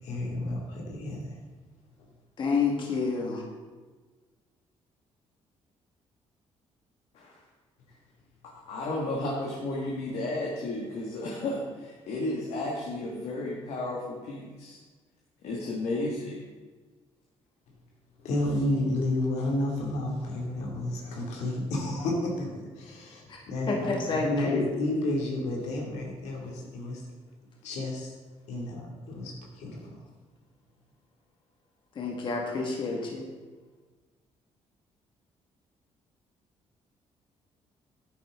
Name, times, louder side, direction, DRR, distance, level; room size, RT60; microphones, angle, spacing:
voice 1, 0.0-1.3 18.2-27.0 27.6-28.1 28.5-29.9, left 1 dB, 85° left, -1 dB, 2.5 m, -31 dB
voice 2, 2.4-3.4 23.3-23.4 23.7-24.7 32.0-33.3, left 4 dB, 45° left, 0 dB, 1.8 m, -29 dB
voice 3, 8.7-14.8 15.4-16.4, left 2 dB, 70° left, -2 dB, 1.8 m, -33 dB
10.5 x 9.4 x 3.7 m, 1.4 s
cardioid pair, 120°, 11 cm